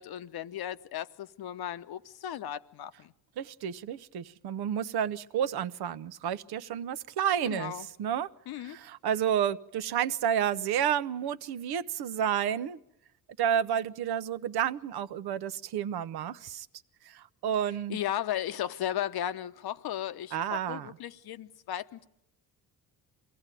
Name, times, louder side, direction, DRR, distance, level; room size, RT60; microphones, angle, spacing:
voice 1, 0.0-3.1 7.4-7.9 8.5-8.8 17.9-22.1, left 11 dB, 70° left, 0.9 m, -35 dB
voice 2, 3.4-7.7 8.0-8.3 8.6-12.8 13.4-16.7 17.1-18.0 20.3-20.9, right 9 dB, 75° right, 0.8 m, -30 dB
23.0 x 16.5 x 9.1 m
cardioid pair, 75°, 39 cm